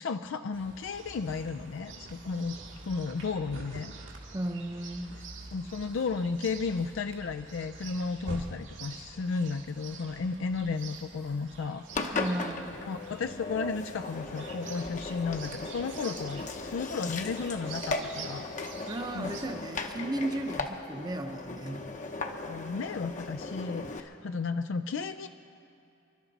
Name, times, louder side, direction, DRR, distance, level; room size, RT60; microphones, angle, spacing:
voice 1, 0.0-2.6 2.8-3.9 5.5-12.2 12.9-18.5 19.1-19.3 22.4-25.3, left 4 dB, 75° left, 8 dB, 0.4 m, -33 dB
Chirp tweet, 0.5-19.5, right 3 dB, 75° right, 2.0 m, -46 dB
voice 2, 4.3-5.1 12.1-12.8 18.9-21.9, right 1 dB, 20° right, 6 dB, 0.8 m, -35 dB
Engine, 11.9-24.0, left 3 dB, 40° left, 0.8 m, -37 dB
27.5 x 12.0 x 4.1 m, 2.7 s
head